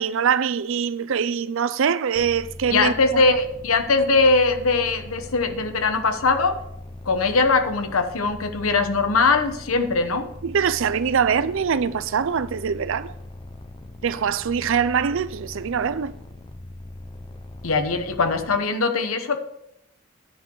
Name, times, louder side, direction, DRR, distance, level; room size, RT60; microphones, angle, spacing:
voice 1, 0.0-2.9 3.3-3.4 10.4-13.1 14.0-16.1, right 7 dB, 65° right, 0.5 m, -23 dB
sound 1, 2.1-18.6, left 1 dB, 25° left, 0.6 m, -41 dB
voice 2, 2.7-6.6 7.0-10.3 17.6-19.4, left 3 dB, 90° left, 1.1 m, -21 dB
10.0 x 7.8 x 4.6 m
head